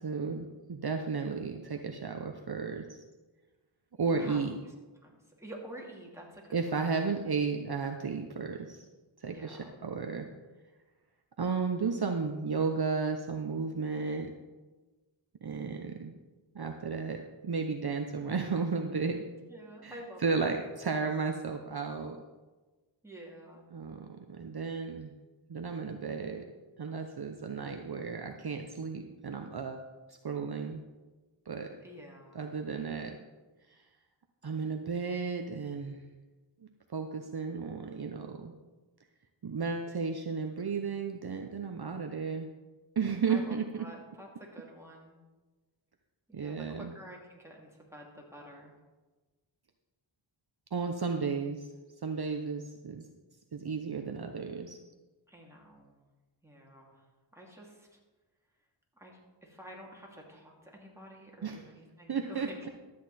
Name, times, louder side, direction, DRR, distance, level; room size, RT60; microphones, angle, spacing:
voice 1, 0.0-3.0 4.0-4.5 6.5-8.9 9.2-10.2 11.4-14.3 15.4-16.1 16.5-19.2 19.8-19.9 20.2-22.2 23.7-25.1 25.5-26.4 26.8-29.9 30.2-30.8 31.5-31.7 32.3-33.2 34.4-36.0 36.9-38.5 39.4-42.5 43.0-43.6 46.3-46.9 50.7-51.6 52.0-53.1 53.5-54.8 61.4-61.6 62.1-62.5, right 5 dB, 50° right, 4 dB, 0.8 m, -33 dB
voice 2, 4.0-4.7 5.0-6.9 9.3-9.8 19.5-20.6 23.0-23.7 31.8-32.5 43.3-45.2 46.3-48.7 55.3-55.9 56.4-57.1 57.3-58.0 59.0-62.7, equal, 5° right, -2 dB, 2.7 m, -49 dB
12.5 x 8.5 x 4.2 m, 1.2 s
wide cardioid pair, 50°, 48 cm